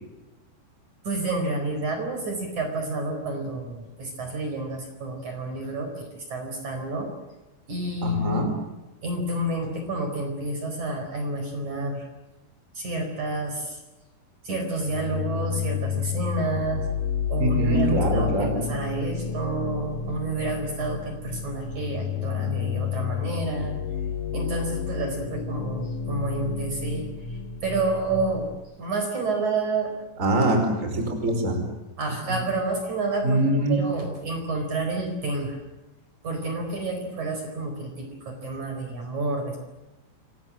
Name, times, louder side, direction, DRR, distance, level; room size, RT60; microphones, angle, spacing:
voice 1, 1.1-7.1 7.7-8.5 9.0-12.0 12.8-13.8 14.5-16.9 17.3-23.7 24.3-27.0 27.6-28.5 28.8-29.9 32.0-33.4 33.7-35.6 36.2-39.6, right 2 dB, 40° right, 4 dB, 5.6 m, -29 dB
voice 2, 8.0-8.5 17.4-18.6 30.2-31.6 32.3-32.4 33.2-33.8, right 1 dB, 15° right, 5 dB, 5.1 m, -23 dB
sound 1, 14.9-28.5, left 8 dB, 60° left, 1.6 m, -30 dB
28.5 x 23.0 x 7.6 m, 1.0 s
omnidirectional pair, 5.2 m